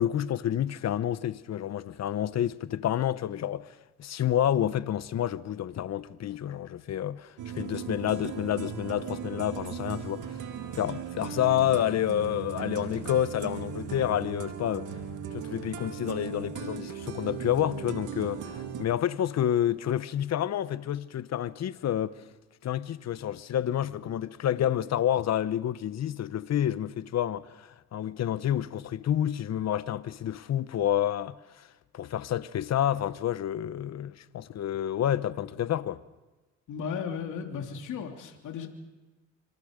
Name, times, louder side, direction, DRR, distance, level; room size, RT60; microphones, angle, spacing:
voice 1, 0.0-3.7 4.0-10.3 10.7-14.9 15.3-22.2 22.6-31.4 31.9-36.0, left 11 dB, 60° left, 1.0 m, -29 dB
sound 1, 7.4-18.9, right 7 dB, 90° right, 2.1 m, -38 dB
voice 2, 36.7-38.7, left 7 dB, 75° left, 3.0 m, -35 dB
26.0 x 25.5 x 5.2 m
cardioid pair, 90°, 30 cm